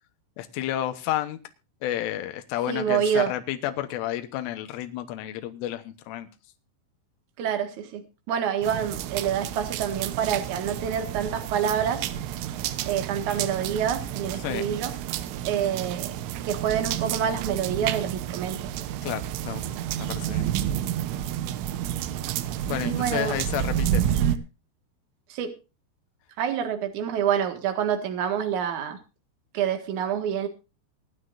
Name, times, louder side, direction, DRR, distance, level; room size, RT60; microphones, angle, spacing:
voice 1, 0.4-1.4 1.8-6.3 14.4-14.7 19.0-19.7 20.0-20.5 22.7-24.0, left 13 dB, 85° left, 7 dB, 3.6 m, -31 dB
voice 2, 2.7-3.3 7.4-12.1 12.9-14.9 15.4-18.8 22.8-23.4 24.1-24.4 25.3-25.5 26.4-29.0 29.5-30.5, right 8 dB, 55° right, 6 dB, 2.5 m, -27 dB
sound 1, 8.6-24.4, right 11 dB, 85° right, 3.4 m, -30 dB
25.0 x 9.7 x 2.6 m, 0.30 s
omnidirectional pair, 5.6 m